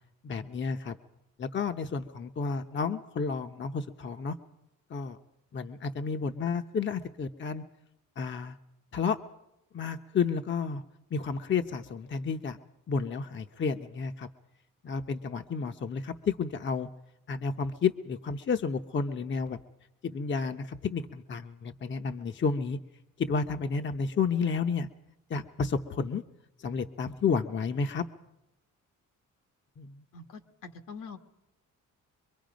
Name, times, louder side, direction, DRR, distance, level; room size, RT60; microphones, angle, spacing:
voice 1, 0.2-1.0 1.4-4.4 4.9-5.2 5.5-7.6 8.2-8.6 8.9-9.2 9.7-10.8 11.1-12.6 12.9-14.3 14.8-16.9 17.3-19.6 20.0-22.8 23.2-24.9 25.3-26.2 26.6-28.0 29.8-30.0, left 5 dB, 35° left, 7 dB, 0.9 m, -31 dB
voice 2, 30.1-31.2, left 5 dB, 75° left, 6 dB, 1.7 m, -44 dB
24.0 x 23.0 x 5.2 m, 0.90 s
cardioid pair, 125°, 32 cm